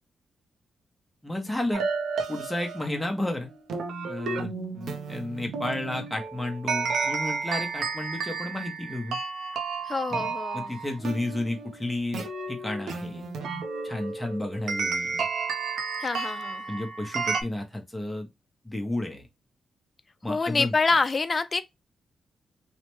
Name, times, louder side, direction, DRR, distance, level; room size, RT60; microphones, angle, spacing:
voice 1, 1.2-1.9 2.3-3.5 4.1-9.2 10.1-13.3 13.8-15.3 16.7-18.3 18.6-19.3 20.2-20.7, left 1 dB, 5° left, 0.7 m, -32 dB
sound 1, 1.7-17.4, right 4 dB, 75° right, 0.6 m, -32 dB
voice 2, 9.8-10.8 16.0-16.7 20.3-21.6, left 4 dB, 25° left, 0.3 m, -26 dB
3.1 x 2.1 x 3.0 m
wide cardioid pair, 150°, 0 cm